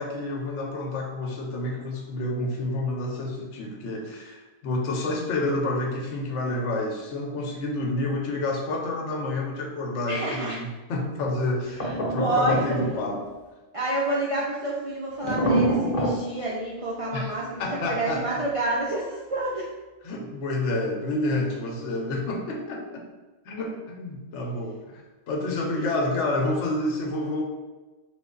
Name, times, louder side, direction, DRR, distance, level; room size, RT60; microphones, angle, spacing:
voice 1, 0.0-13.2 17.1-17.3 17.6-18.4 20.0-23.1 23.5-27.4, left 2 dB, 75° left, 1 dB, 0.9 m, -29 dB
voice 2, 10.1-10.6 11.8-12.8 13.7-19.7 25.8-25.9, right 2 dB, 60° right, -6 dB, 0.3 m, -28 dB
sound 1, 11.8-13.2 15.2-16.2, right 1 dB, 50° left, 0.9 m, -25 dB
3.2 x 2.2 x 3.7 m, 1.2 s
omnidirectional pair, 1.3 m